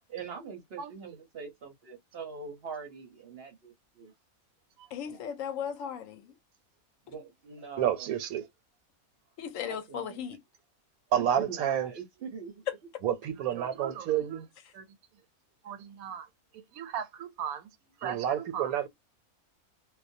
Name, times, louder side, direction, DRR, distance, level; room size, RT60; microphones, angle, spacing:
voice 1, 0.1-4.1 5.0-5.2 7.1-8.1 9.7-10.3 11.1-12.7, right 5 dB, 55° right, 0.7 m, -43 dB
voice 2, 4.9-6.3 9.4-10.4, left 8 dB, 70° left, 0.9 m, -36 dB
voice 3, 7.8-8.4 11.1-11.9 13.0-14.5 14.7-14.8 15.6-16.3 16.7-17.6 18.0-18.9, right 10 dB, 90° right, 1.1 m, -30 dB
2.3 x 2.1 x 2.5 m
omnidirectional pair, 1.5 m